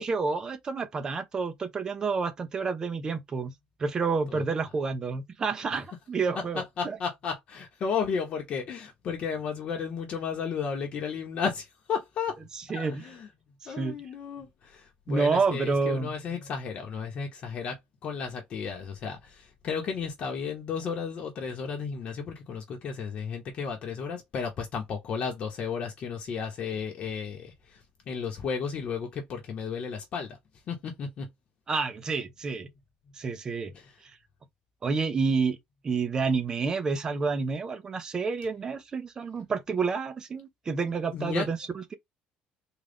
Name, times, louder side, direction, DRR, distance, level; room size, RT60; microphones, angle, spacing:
voice 1, 0.0-3.5 3.8-7.0 12.7-13.0 13.6-14.0 15.1-16.1 31.7-32.7 33.1-33.7 34.8-35.6 35.8-41.9, right 4 dB, 20° right, 0.6 m, -29 dB
voice 2, 6.3-12.4 12.7-13.3 13.7-17.8 18.0-30.4 30.7-31.3 33.7-33.9 41.1-41.4, left 6 dB, 40° left, 0.9 m, -33 dB
3.8 x 2.3 x 3.5 m
cardioid pair, 165°, 3 cm